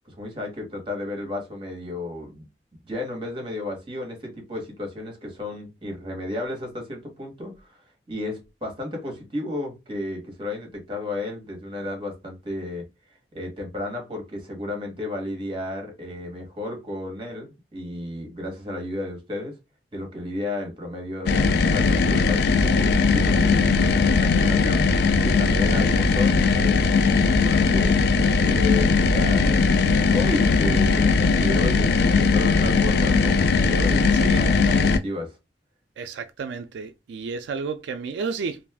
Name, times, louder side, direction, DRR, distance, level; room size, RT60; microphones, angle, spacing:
voice 1, 0.1-2.5 2.8-7.8 8.1-12.8 13.3-19.5 19.9-24.9 25.2-28.0 28.4-35.4, left 1 dB, 30° right, 1.1 m, -33 dB
sound 1, 21.3-35.0, left 4 dB, 60° left, 0.3 m, -19 dB
voice 2, 25.7-26.1 34.2-34.4 36.0-38.6, right 5 dB, 85° right, 0.3 m, -32 dB
2.5 x 2.3 x 3.4 m
head